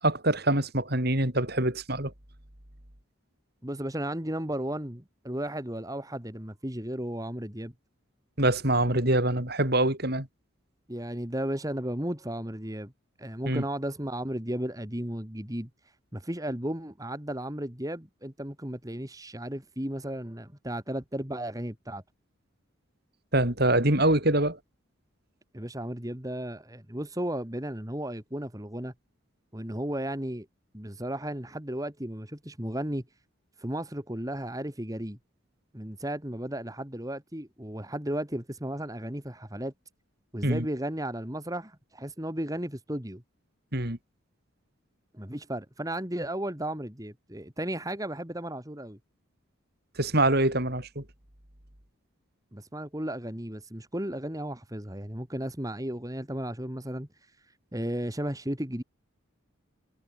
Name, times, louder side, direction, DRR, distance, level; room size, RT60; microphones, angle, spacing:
voice 1, 0.0-2.1 8.4-10.3 13.5-13.6 23.3-24.6 40.4-40.7 43.7-44.0 50.0-51.0, right 1 dB, 50° right, 5.4 m, -24 dB
voice 2, 3.6-7.7 10.9-12.9 13.2-15.7 16.1-22.0 25.5-28.9 29.5-30.5 30.7-33.0 33.6-35.2 35.7-39.7 40.3-43.2 45.1-49.0 52.5-57.1 57.4-58.8, right 1 dB, 15° right, 2.5 m, -34 dB
head